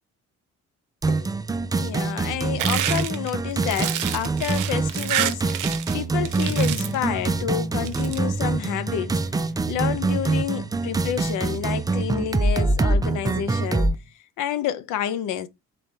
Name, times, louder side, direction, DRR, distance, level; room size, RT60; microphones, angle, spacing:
sound 1, 1.0-13.9, right 3 dB, 15° right, 0.3 m, -25 dB
voice 1, 1.7-9.4 9.7-13.9 14.4-15.5, left 10 dB, 90° left, 0.6 m, -29 dB
sound 2, 2.6-6.0 6.2-7.0 7.7-8.2, right 12 dB, 85° right, 0.6 m, -28 dB
sound 3, 6.4-14.1, left 2 dB, 30° left, 0.8 m, -41 dB
3.8 x 3.2 x 3.2 m
cardioid pair, 90°, 30 cm